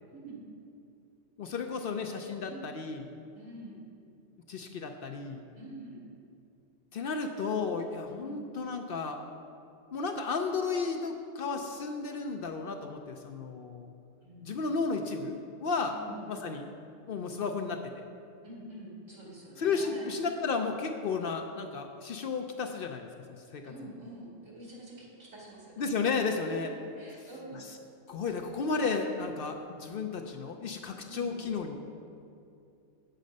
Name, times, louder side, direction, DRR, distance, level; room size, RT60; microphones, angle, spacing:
voice 1, 0.1-0.4 2.4-2.7 3.3-3.8 5.5-6.0 8.1-8.5 14.2-14.6 15.9-16.6 18.4-20.0 23.6-27.6 31.0-31.3, right 1 dB, 85° right, -5 dB, 2.6 m, -47 dB
voice 2, 1.4-3.1 4.5-5.4 6.9-9.2 9.9-13.9 14.4-15.9 16.3-16.6 17.1-17.8 19.6-23.1 23.5-23.9 25.8-26.7 27.5-27.6 28.1-31.7, left 4 dB, 60° left, 4 dB, 0.6 m, -33 dB
7.8 x 7.4 x 5.2 m, 2.5 s
omnidirectional pair, 1.3 m